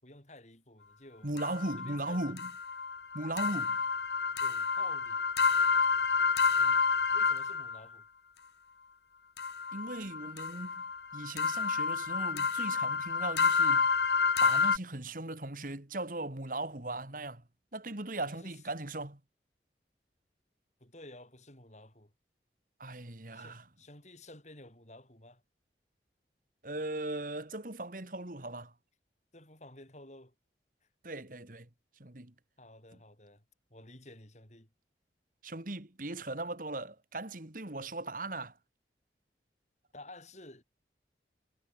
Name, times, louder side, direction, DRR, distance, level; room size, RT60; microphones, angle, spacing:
voice 1, 0.0-1.3 1.8-2.4 4.4-5.3 6.6-6.8 7.1-8.1 18.2-18.6 20.8-22.1 23.3-25.4 29.3-30.3 32.6-33.4 33.7-34.7 39.9-40.6, left 1 dB, 40° left, 7.7 m, -53 dB
voice 2, 1.2-2.5 3.1-3.8 9.7-10.8 11.1-13.9 14.4-17.4 17.7-19.2 22.8-23.6 26.6-28.7 31.0-31.7 32.0-32.3 35.4-38.5, right 2 dB, 50° right, 2.4 m, -38 dB
sound 1, 1.4-7.8 9.4-14.8, left 5 dB, 75° left, 1.5 m, -29 dB
head